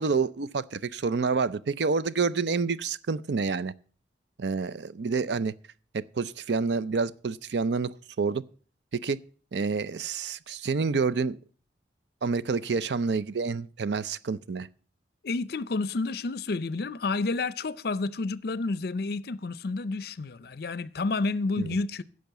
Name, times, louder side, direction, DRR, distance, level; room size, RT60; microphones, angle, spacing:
voice 1, 0.0-3.7 4.4-5.5 5.9-8.4 8.9-9.2 9.5-11.4 12.2-14.7 21.6-21.7, right 4 dB, 70° right, 0.5 m, -28 dB
voice 2, 15.2-22.0, left 3 dB, 60° left, 0.6 m, -30 dB
10.5 x 6.4 x 8.0 m
head